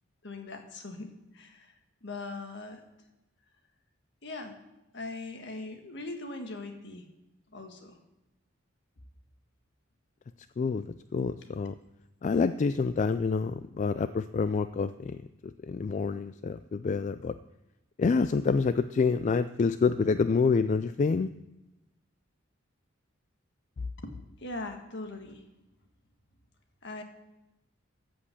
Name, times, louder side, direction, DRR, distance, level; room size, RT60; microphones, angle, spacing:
voice 1, 0.2-1.7 2.0-2.8 4.2-4.5 4.9-7.1 7.5-8.0 24.0-25.4 26.8-27.0, left 2 dB, 60° left, 5 dB, 1.6 m, -40 dB
voice 2, 10.6-11.7 12.2-17.3 18.0-21.3, left 4 dB, 40° left, 12 dB, 0.3 m, -27 dB
14.0 x 5.2 x 8.3 m, 0.95 s
head